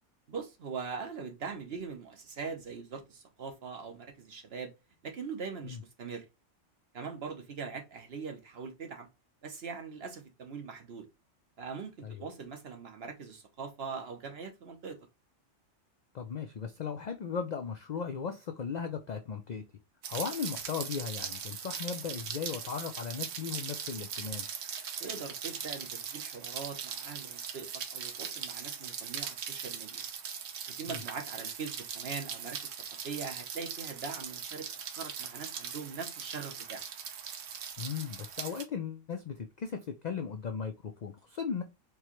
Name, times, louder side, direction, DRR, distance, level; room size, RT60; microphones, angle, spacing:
voice 1, 0.3-4.7 5.0-6.2 6.9-9.1 9.4-11.1 11.6-15.0 25.0-30.0 30.7-34.7 34.9-36.8, right 5 dB, 55° right, 1.1 m, -42 dB
voice 2, 16.1-19.6 20.1-24.5 30.9-31.0 37.8-41.6, left 6 dB, 65° left, 0.4 m, -37 dB
Rain, 20.0-38.7, right 7 dB, 80° right, 1.0 m, -40 dB
4.6 x 2.3 x 2.9 m
omnidirectional pair, 1.3 m